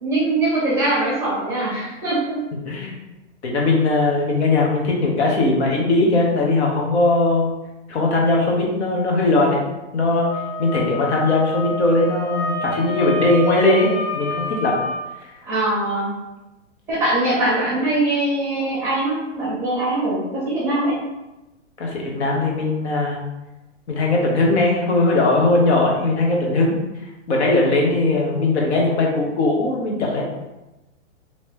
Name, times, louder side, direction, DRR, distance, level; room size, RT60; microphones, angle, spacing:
voice 1, 0.0-2.4 15.4-16.1 16.9-20.9, right 2 dB, 5° right, -9 dB, 0.7 m, -22 dB
voice 2, 2.6-3.0 3.4-7.5 7.9-9.6 9.9-10.3 10.6-14.8 21.8-23.2 23.9-26.7 27.3-30.2, left 2 dB, 65° left, -1 dB, 1.1 m, -19 dB
Wind instrument woodwind instrument, 10.2-15.0, left 2 dB, 40° left, 1.4 m, -28 dB
3.1 x 2.9 x 3.1 m, 1.0 s
hypercardioid pair, 170°, 36 cm